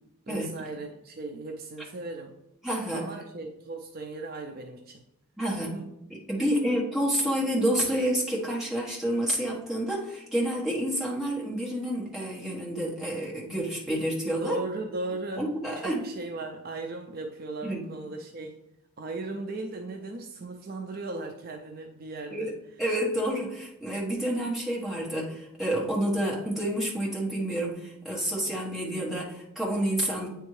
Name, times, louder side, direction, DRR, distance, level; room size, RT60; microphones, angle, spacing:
voice 1, 0.3-2.3 2.9-5.0 5.5-5.9 6.4-6.5 14.4-18.7 19.0-22.5, right 2 dB, 40° right, 3 dB, 0.4 m, -37 dB
voice 2, 2.6-3.1 5.4-5.7 6.1-14.6 15.4-16.1 17.6-17.8 22.3-22.5 22.8-30.3, right 1 dB, ahead, -5 dB, 1.2 m, -29 dB
8.8 x 3.5 x 3.1 m, 0.88 s
head